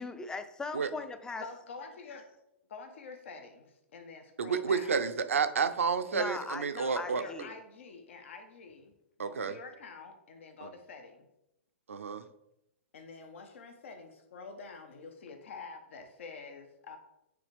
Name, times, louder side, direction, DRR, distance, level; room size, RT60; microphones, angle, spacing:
voice 1, 0.0-1.4 6.1-6.7 7.0-7.6, left 3 dB, 10° left, 10 dB, 0.4 m, -39 dB
voice 2, 1.4-2.4 2.7-5.1 6.7-8.9 9.2-11.3 12.9-17.0, left 4 dB, 70° left, 6 dB, 0.9 m, -47 dB
voice 3, 4.4-7.2 9.2-9.6 10.6-10.7 11.9-12.2, right 6 dB, 85° right, 11 dB, 0.5 m, -30 dB
9.3 x 3.5 x 3.3 m, 0.83 s
hypercardioid pair, 120°, 7 cm